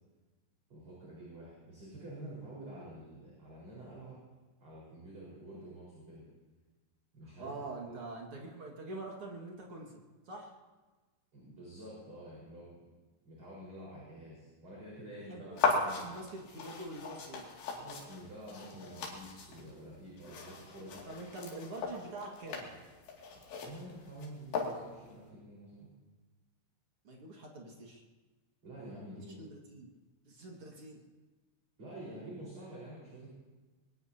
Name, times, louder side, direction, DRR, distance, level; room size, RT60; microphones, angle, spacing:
voice 1, 0.7-4.2 4.6-6.2 7.1-7.5 7.8-8.1 11.3-12.8 13.2-16.2 17.7-21.0 22.7-22.8 23.6-25.9 28.6-29.4 31.8-33.3, right 1 dB, 25° right, -6 dB, 5.3 m, -48 dB
voice 2, 7.2-10.6 15.1-15.6 15.9-17.5 21.0-22.7 27.0-28.0 29.1-29.9 30.3-31.0, right 2 dB, 50° right, -1 dB, 1.8 m, -45 dB
sound 1, 15.6-25.1, left 4 dB, 65° left, 4.5 m, -38 dB
23.0 x 20.0 x 2.9 m, 1.3 s
omnidirectional pair, 5.4 m